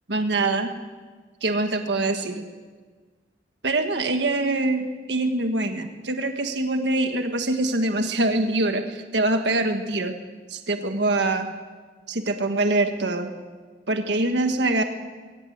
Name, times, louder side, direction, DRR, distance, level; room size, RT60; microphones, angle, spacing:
voice 1, 0.1-0.8 1.4-2.4 3.6-10.2 10.5-11.5 12.1-13.3 13.9-14.8, right 2 dB, 75° right, 6 dB, 1.6 m, -24 dB
22.0 x 18.0 x 8.0 m, 1.4 s
head